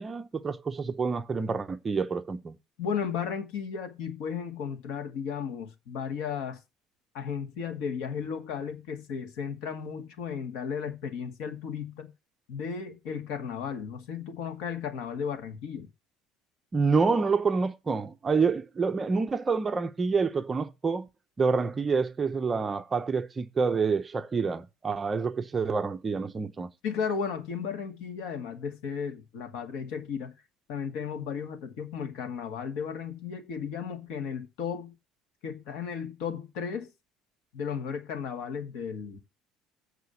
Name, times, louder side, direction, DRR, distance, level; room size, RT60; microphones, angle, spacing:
voice 1, 0.0-2.6 16.7-21.1 21.4-26.7, right 5 dB, 15° right, 0.5 m, -27 dB
voice 2, 2.8-6.6 7.1-12.1 12.5-15.9 26.8-30.3 30.7-35.0 35.4-36.9 37.5-39.2, left 6 dB, 70° left, 1.8 m, -34 dB
8.1 x 4.8 x 6.9 m
cardioid pair, 175°, 0 cm